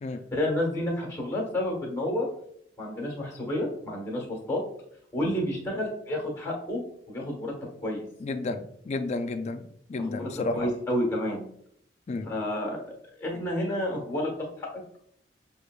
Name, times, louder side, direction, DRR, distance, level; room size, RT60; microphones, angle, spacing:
voice 1, 0.3-2.3 2.8-4.6 5.1-6.8 7.1-7.5 7.8-8.0 10.0-11.5 12.2-14.7, left 1 dB, 15° left, -1 dB, 1.3 m, -30 dB
voice 2, 8.2-9.6 9.9-10.7 12.1-12.3, left 2 dB, 40° left, 9 dB, 0.3 m, -31 dB
6.3 x 2.8 x 2.3 m, 0.68 s
head